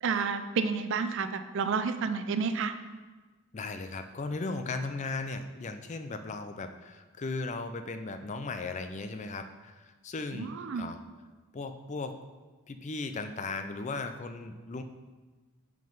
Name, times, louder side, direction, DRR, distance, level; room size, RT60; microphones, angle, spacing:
voice 1, 0.0-2.7 10.3-10.9, right 5 dB, 55° right, 10 dB, 0.4 m, -30 dB
voice 2, 3.5-11.0 11.5-12.2 12.7-14.8, left 3 dB, 30° left, 8 dB, 0.4 m, -37 dB
7.6 x 3.9 x 5.3 m, 1.3 s
head